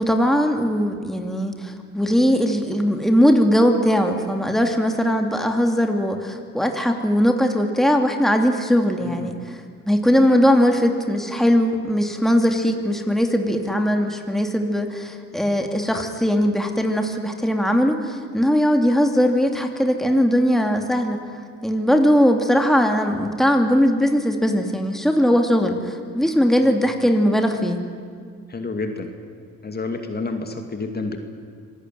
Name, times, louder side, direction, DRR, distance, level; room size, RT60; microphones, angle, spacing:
voice 1, 0.0-9.3 9.9-21.2 21.6-27.8, equal, ahead, 3 dB, 2.7 m, -19 dB
voice 2, 9.0-9.3 26.6-26.8 28.5-29.1 29.6-31.2, left 3 dB, 30° left, 5 dB, 2.6 m, -29 dB
26.0 x 19.0 x 9.4 m, 2.1 s
cardioid pair, 90°, 30 cm